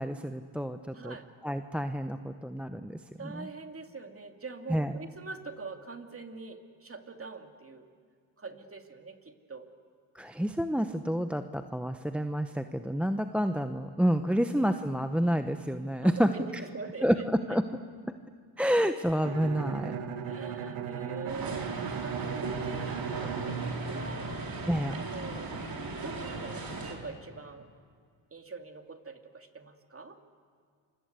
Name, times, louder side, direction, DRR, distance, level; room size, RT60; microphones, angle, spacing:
voice 1, 0.0-1.2 1.4-3.5 4.7-4.9 10.1-16.3 17.0-17.6 18.6-20.0 24.7-25.0, equal, ahead, 8 dB, 1.0 m, -29 dB
voice 2, 0.9-1.3 3.2-7.9 8.4-9.7 14.3-14.4 16.0-17.6 20.2-24.6 24.9-25.5 26.0-27.7 28.3-30.2, right 4 dB, 25° right, 5 dB, 2.8 m, -44 dB
Bowed string instrument, 19.2-24.9, right 7 dB, 80° right, 1.9 m, -37 dB
sound 1, 21.3-26.9, right 3 dB, 45° right, 4.7 m, -37 dB
28.0 x 24.5 x 8.3 m, 2.1 s
supercardioid pair, 70°, 49 cm